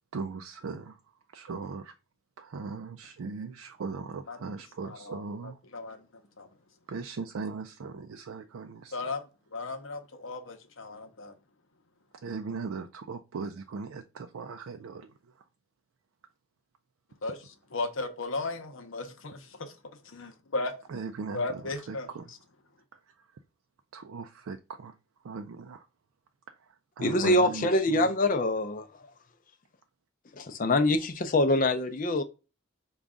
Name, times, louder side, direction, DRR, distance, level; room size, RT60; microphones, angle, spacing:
voice 1, 0.1-1.0 1.3-1.9 2.4-5.6 6.9-9.1 12.2-15.1 20.9-22.2 23.9-24.9 25.2-25.8 27.0-28.1, right 4 dB, 75° right, 0.4 m, -38 dB
voice 2, 4.8-6.0 6.4-6.5 8.9-11.3 17.2-19.7 20.0-20.7 21.3-22.4, left 3 dB, 65° left, 0.7 m, -36 dB
voice 3, 27.0-28.9 30.3-32.2, left 2 dB, 40° left, 0.5 m, -25 dB
5.1 x 2.3 x 3.6 m
head